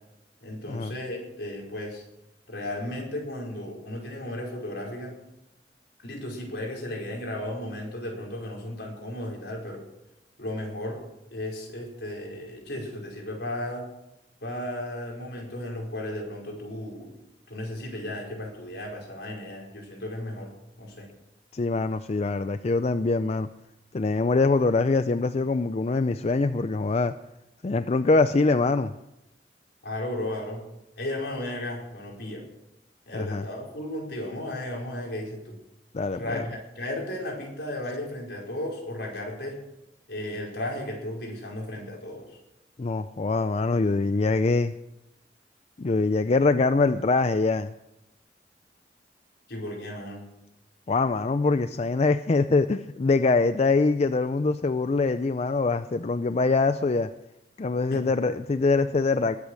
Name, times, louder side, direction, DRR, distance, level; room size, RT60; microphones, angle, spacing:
voice 1, 0.4-2.0 2.5-5.1 6.0-9.8 10.4-11.0 11.3-13.9 14.4-17.2 17.5-20.5 20.8-21.1 29.8-30.6 31.0-32.5 33.1-35.5 36.1-39.6 40.1-42.4 49.5-50.2 57.9-58.0, left 1 dB, 70° left, -1 dB, 5.0 m, -34 dB
voice 2, 21.5-23.5 23.9-27.1 27.6-28.9 33.1-33.4 35.9-36.4 42.8-44.7 45.8-47.7 50.9-57.1 57.6-59.4, left 3 dB, 35° left, 11 dB, 0.4 m, -24 dB
21.0 x 8.5 x 6.4 m, 0.89 s
head